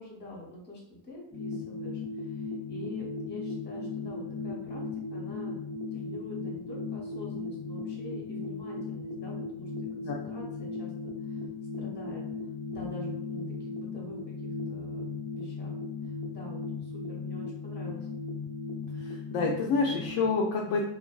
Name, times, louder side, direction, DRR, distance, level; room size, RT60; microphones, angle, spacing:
voice 1, 0.0-4.8 5.1-5.6 5.9-11.5 11.7-12.2 12.7-15.8 16.0-18.1, left 2 dB, 25° left, -3 dB, 0.9 m, -46 dB
sound 1, 1.3-20.3, left 4 dB, 5° right, 0.6 m, -37 dB
voice 2, 19.0-20.9, left 4 dB, 50° left, -1 dB, 0.4 m, -28 dB
2.5 x 2.3 x 2.2 m, 0.76 s
cardioid pair, 115°, 46 cm